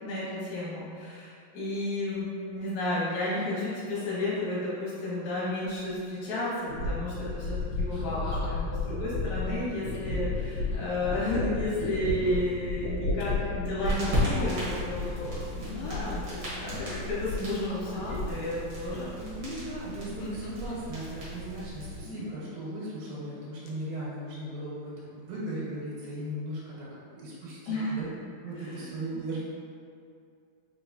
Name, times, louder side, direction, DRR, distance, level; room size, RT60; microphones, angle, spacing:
voice 1, 0.0-19.1 27.7-27.9 28.6-28.9, left 1 dB, 60° left, -9 dB, 2.4 m, -32 dB
sound 1, 5.9-6.0 6.7-16.4 16.6-17.5 17.8-18.6 18.9-19.4, left 3 dB, 45° left, 1.7 m, -33 dB
sound 2, 7.9-8.5 9.5-10.0 10.6-10.9 11.9-12.4 13.0-13.2 14.0-14.9 15.2-16.2 16.6-17.1 17.7-18.2 19.2-20.8 22.0-22.4 23.0-23.4 23.7-23.8 25.3-25.7 26.8-27.1, left 2 dB, 85° left, 1.8 m, -42 dB
sound 3, 13.8-22.0, left 1 dB, 60° right, 1.3 m, -35 dB
voice 2, 19.3-28.1 28.4-29.4, right 1 dB, 80° right, -7 dB, 2.7 m, -37 dB
5.7 x 2.9 x 2.6 m, 2.3 s
omnidirectional pair, 4.1 m